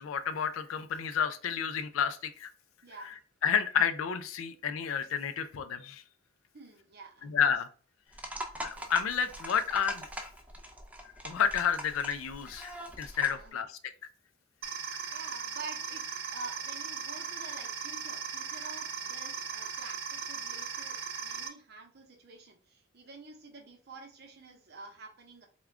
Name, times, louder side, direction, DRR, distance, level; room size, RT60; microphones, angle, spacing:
voice 1, 0.0-2.5 3.4-6.0 7.2-7.7 8.6-10.1 11.2-13.8, left 7 dB, 85° left, 10 dB, 0.4 m, -30 dB
voice 2, 2.8-3.2 6.5-7.3 13.3-13.6 15.1-25.5, right 3 dB, 55° right, 2 dB, 0.8 m, -48 dB
sound 1, 8.1-13.5, right 1 dB, 5° right, 0.4 m, -42 dB
sound 2, 14.6-21.5, right 6 dB, 85° right, 0.8 m, -38 dB
3.5 x 2.2 x 3.5 m, 0.41 s
head